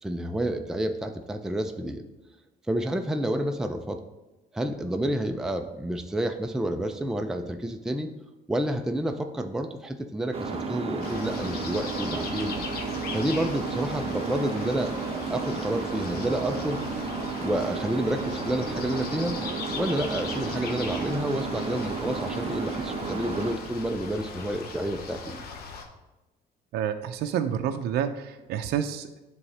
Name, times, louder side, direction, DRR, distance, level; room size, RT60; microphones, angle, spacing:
voice 1, 0.0-2.0 2.7-4.0 4.5-8.1 8.5-12.6 13.1-16.8 17.4-19.4 19.7-25.4, right 1 dB, 5° right, 5 dB, 0.4 m, -29 dB
sound 1, 10.3-23.5, right 4 dB, 35° right, 0.8 m, -32 dB
sound 2, 11.0-25.8, left 4 dB, 70° left, 0.9 m, -39 dB
voice 2, 26.7-29.2, right 9 dB, 75° right, 7 dB, 0.5 m, -29 dB
10.5 x 3.6 x 3.3 m, 1.1 s
cardioid pair, 110°, 17 cm